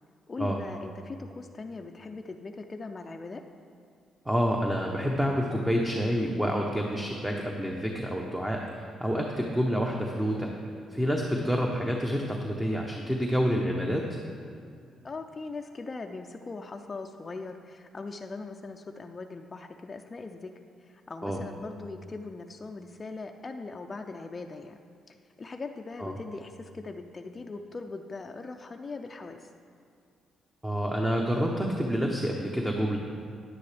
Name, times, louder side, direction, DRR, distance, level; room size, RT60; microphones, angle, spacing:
voice 1, 0.3-3.4 15.0-20.5 20.8-24.8 25.1-29.5, left 3 dB, 30° left, 4 dB, 0.4 m, -40 dB
voice 2, 4.3-10.5 10.9-14.0 21.2-21.4 26.0-26.1 30.6-33.0, equal, 10° right, 0 dB, 0.8 m, -28 dB
9.8 x 9.5 x 3.3 m, 2.2 s
cardioid pair, 90°, 0 cm